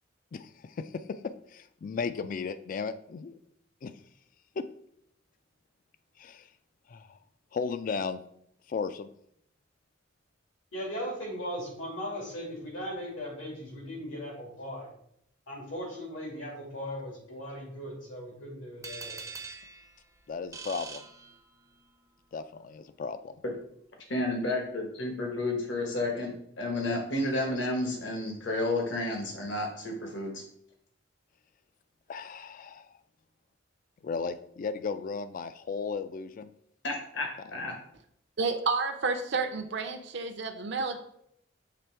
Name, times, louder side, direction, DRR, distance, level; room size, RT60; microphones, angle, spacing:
voice 1, 0.3-1.0 1.5-3.3 3.8-3.9 4.6-4.7 6.2-6.5 6.9-7.2 7.5-8.2 8.7-9.1 20.3-21.1 22.3-23.3 32.1-32.9 34.0-36.5 37.4-37.6, left 5 dB, 45° left, 12 dB, 0.3 m, -35 dB
voice 2, 10.7-14.9 15.5-19.2, equal, 85° left, -3 dB, 2.7 m, -38 dB
sound 1, 18.8-21.9, right 5 dB, 15° right, 0.5 m, -44 dB
voice 3, 24.1-30.4 36.8-37.8, left 2 dB, 65° left, 1 dB, 1.2 m, -31 dB
voice 4, 38.4-41.0, right 4 dB, 60° right, 5 dB, 0.6 m, -30 dB
6.8 x 3.3 x 4.4 m, 0.72 s
head